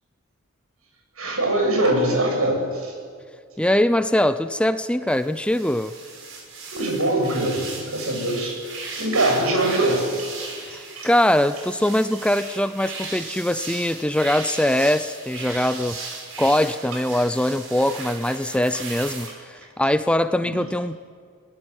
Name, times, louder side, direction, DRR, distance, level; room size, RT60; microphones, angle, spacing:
voice 1, 1.2-2.9 6.7-10.5 11.0-11.1 20.4-20.6, right 1 dB, 80° right, 2 dB, 7.6 m, -23 dB
voice 2, 3.6-5.9 10.6-21.0, left 1 dB, 5° left, 12 dB, 0.5 m, -22 dB
sound 1, 5.1-19.3, right 4 dB, 60° right, 6.6 m, -37 dB
23.5 x 19.5 x 9.8 m, 2.2 s
head